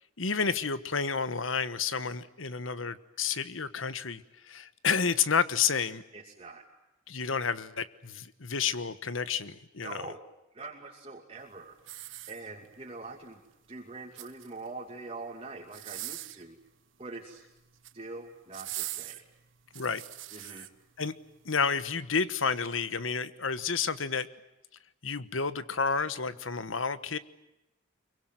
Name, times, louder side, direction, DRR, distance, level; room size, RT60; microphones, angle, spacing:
voice 1, 0.2-6.0 7.1-10.1 19.7-20.0 20.4-20.6 21.0-21.1 21.4-24.3 25.0-27.2, left 5 dB, 80° left, 14 dB, 1.3 m, -30 dB
voice 2, 6.1-6.6 9.8-10.2 10.5-13.4 13.7-16.6 17.0-17.4 17.9-19.2 20.3-20.7, right 3 dB, 30° right, 0 dB, 2.6 m, -44 dB
sound 1, 11.8-12.8 13.9-14.7 15.6-16.5 17.6-18.0 18.5-20.7 21.3-21.4, right 15 dB, 75° right, 1.4 m, -41 dB
25.0 x 23.5 x 9.3 m, 0.94 s
head